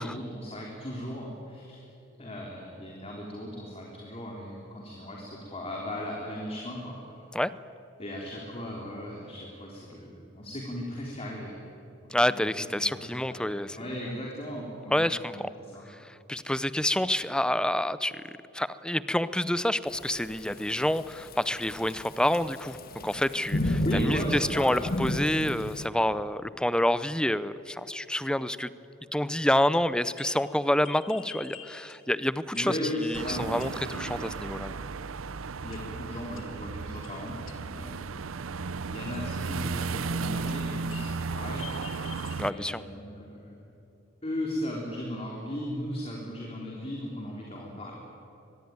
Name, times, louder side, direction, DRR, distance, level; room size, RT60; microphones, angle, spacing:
voice 1, 0.0-1.8 2.2-7.3 8.0-11.5 12.0-15.9 23.8-25.0 32.5-34.3 35.6-38.2 38.9-42.1 42.4-43.7 44.2-47.9, equal, 30° left, -2 dB, 3.6 m, -37 dB
voice 2, 12.1-13.9 14.9-15.5 15.9-18.2 18.5-28.7 29.1-34.8 42.4-42.8, left 1 dB, 5° left, 15 dB, 0.6 m, -28 dB
Thunderstorm / Rain, 19.9-25.8, left 1 dB, 50° left, 1.5 m, -33 dB
sound 1, 30.2-32.2 32.5-32.9 33.1-34.1 35.7-36.1 36.3-37.9 39.1-40.2 40.5-42.9, left 9 dB, 75° left, 2.0 m, -49 dB
sound 2, 33.1-42.5, right 4 dB, 85° right, 0.7 m, -35 dB
24.0 x 21.5 x 9.6 m, 2.9 s
head